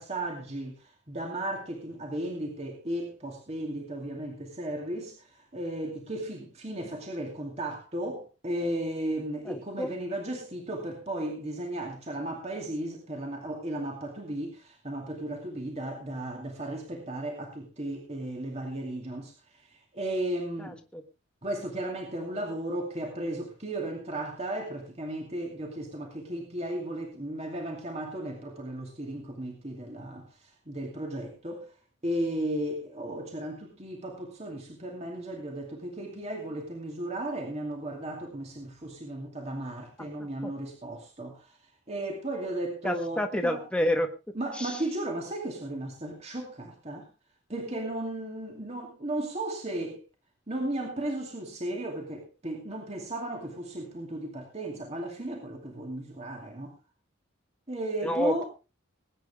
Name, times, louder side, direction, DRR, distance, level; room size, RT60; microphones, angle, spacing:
voice 1, 0.0-20.8 21.4-31.7 32.0-41.6 41.9-43.6 44.4-47.1 47.5-50.0 50.5-56.7 57.7-58.5, right 1 dB, 30° right, 2.5 m, -35 dB
voice 2, 9.4-9.9 20.6-21.0 40.2-40.5 42.8-44.1 44.5-44.8 58.0-58.4, equal, 5° left, 1.4 m, -29 dB
20.5 x 9.3 x 3.6 m
head